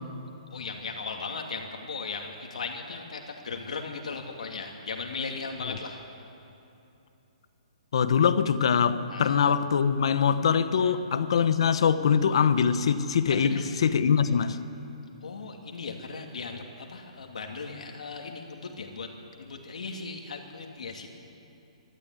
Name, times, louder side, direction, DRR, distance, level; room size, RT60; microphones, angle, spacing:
voice 1, 0.5-6.0 9.1-9.3 10.8-11.0 13.3-13.6 15.2-19.1 19.4-21.1, left 4 dB, 80° left, 2 dB, 2.6 m, -37 dB
voice 2, 7.9-14.6, left 7 dB, 50° left, 12 dB, 1.0 m, -23 dB
23.5 x 13.0 x 9.6 m, 2.8 s
hypercardioid pair, 175°, 4 cm